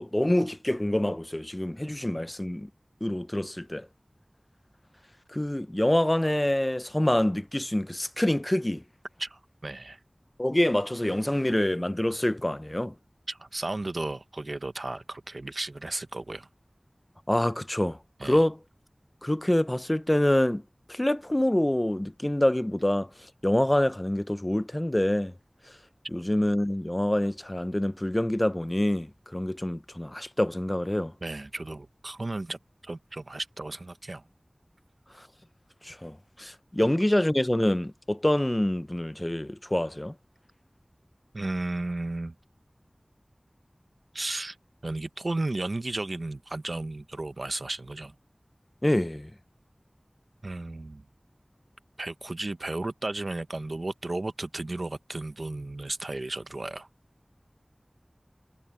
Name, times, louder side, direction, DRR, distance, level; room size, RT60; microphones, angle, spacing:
voice 1, 0.0-2.7 3.0-3.9 5.3-8.8 10.4-12.9 17.3-18.6 19.2-20.6 20.9-23.1 23.4-25.3 26.1-31.1 35.2-35.3 35.8-40.1 48.8-49.3, left 1 dB, 25° left, 0.6 m, -26 dB
voice 2, 9.2-10.0 13.3-16.5 18.2-18.5 31.2-34.3 41.3-42.3 44.1-44.6 44.8-48.2 50.4-51.0 52.0-56.9, right 2 dB, 75° right, 0.9 m, -34 dB
wide cardioid pair, 45°, 0 cm